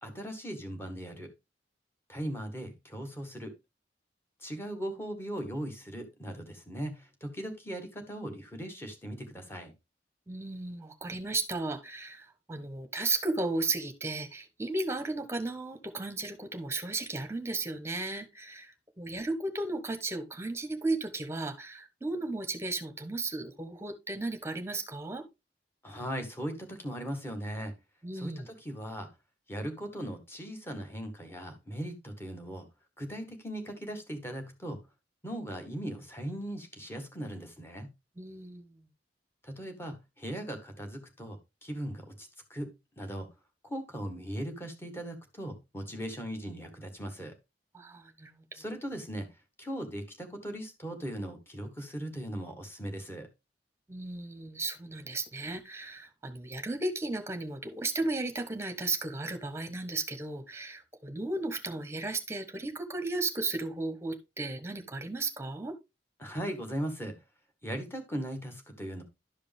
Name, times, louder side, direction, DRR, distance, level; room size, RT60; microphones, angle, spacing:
voice 1, 0.0-1.3 2.1-3.5 4.4-9.7 25.8-27.7 28.1-29.1 29.5-32.7 33.0-34.8 35.2-37.9 39.4-42.7 43.0-43.3 43.6-47.3 48.5-49.3 49.6-53.3 66.2-67.2 67.6-69.0, equal, 15° left, 1.8 m, -38 dB
voice 2, 10.3-25.2 28.0-28.5 38.2-38.8 47.7-48.4 53.9-65.8, right 3 dB, 15° right, 1.2 m, -35 dB
11.5 x 5.1 x 3.5 m
head